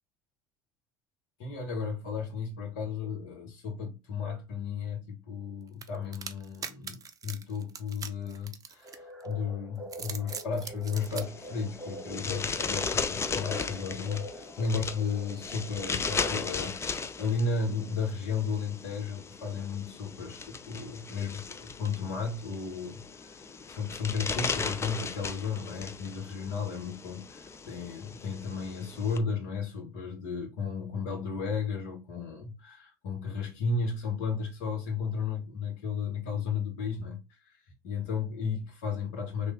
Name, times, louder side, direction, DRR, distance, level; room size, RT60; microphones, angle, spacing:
voice 1, 1.4-37.2 37.4-39.5, left 5 dB, 65° left, 1.3 m, -34 dB
sound 1, 5.8-9.3 9.8-11.2, right 6 dB, 30° right, 0.5 m, -41 dB
sound 2, 8.8-17.2, right 1 dB, 5° left, 1.5 m, -46 dB
sound 3, 11.0-29.2, left 5 dB, 20° left, 0.5 m, -37 dB
3.3 x 2.4 x 3.2 m
hypercardioid pair, 65°, 12 cm